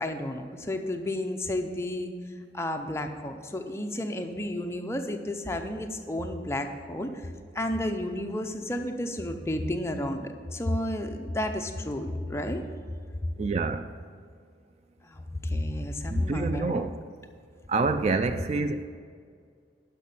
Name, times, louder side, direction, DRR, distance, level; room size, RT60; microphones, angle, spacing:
voice 1, 0.0-2.1 2.5-7.1 7.5-12.6 15.1-16.9 18.3-18.4, left 1 dB, 15° left, 5 dB, 0.6 m, -31 dB
voice 2, 13.4-13.9 16.1-17.0 17.7-18.8, right 3 dB, 35° right, 9 dB, 0.3 m, -27 dB
10.5 x 5.8 x 5.4 m, 2.1 s
head